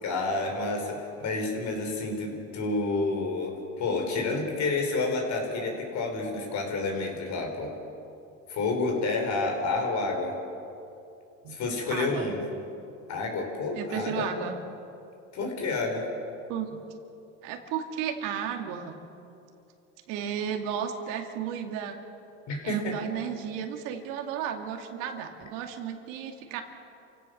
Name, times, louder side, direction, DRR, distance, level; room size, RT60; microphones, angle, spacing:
voice 1, 0.0-7.7 8.5-10.4 11.5-12.4 13.1-14.3 15.3-16.1 22.5-23.0, left 3 dB, 60° left, 2 dB, 5.3 m, -29 dB
voice 2, 11.9-12.3 13.7-14.6 16.5-16.8 17.4-19.0 20.1-22.0 22.6-26.6, right 8 dB, 80° right, 4 dB, 2.3 m, -33 dB
28.5 x 16.5 x 6.8 m, 2.7 s
supercardioid pair, 110°, 33 cm